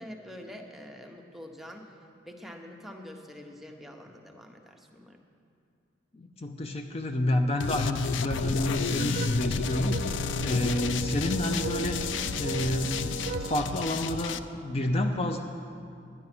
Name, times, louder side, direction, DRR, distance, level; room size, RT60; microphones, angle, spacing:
voice 1, 0.0-2.0 2.2-5.2 10.2-10.6, left 1 dB, ahead, 1 dB, 0.9 m, -46 dB
voice 2, 6.1-12.0 12.4-15.4, left 1 dB, 35° left, 4 dB, 0.5 m, -29 dB
sound 1, 7.6-14.4, left 5 dB, 85° left, 0.4 m, -32 dB
sound 2, 8.3-13.6, right 3 dB, 45° right, 0.6 m, -36 dB
11.0 x 9.8 x 6.0 m, 2.4 s
head